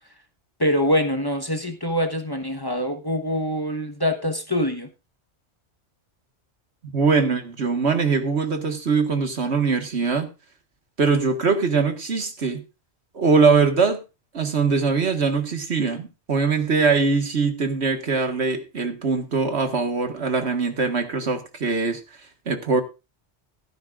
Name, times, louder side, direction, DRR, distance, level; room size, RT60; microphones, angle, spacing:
voice 1, 0.6-4.9, equal, 20° left, 6 dB, 1.2 m, -24 dB
voice 2, 6.8-10.3 11.0-12.6 13.1-14.0 14.3-22.0 22.5-22.8, right 4 dB, 75° right, 6 dB, 1.9 m, -22 dB
16.0 x 12.5 x 2.5 m, 0.27 s
omnidirectional pair, 1.1 m